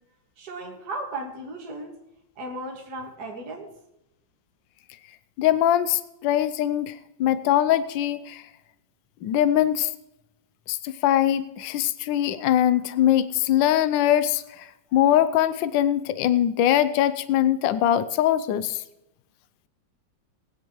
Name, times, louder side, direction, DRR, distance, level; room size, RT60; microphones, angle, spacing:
voice 1, 0.4-2.0 2.4-3.7, right 2 dB, 55° right, 0 dB, 2.3 m, -35 dB
voice 2, 5.4-6.9 7.2-8.4 9.2-9.9 10.7-14.7 14.9-18.8, left 11 dB, 80° left, 13 dB, 1.4 m, -22 dB
20.5 x 9.2 x 3.1 m, 0.88 s
omnidirectional pair, 2.1 m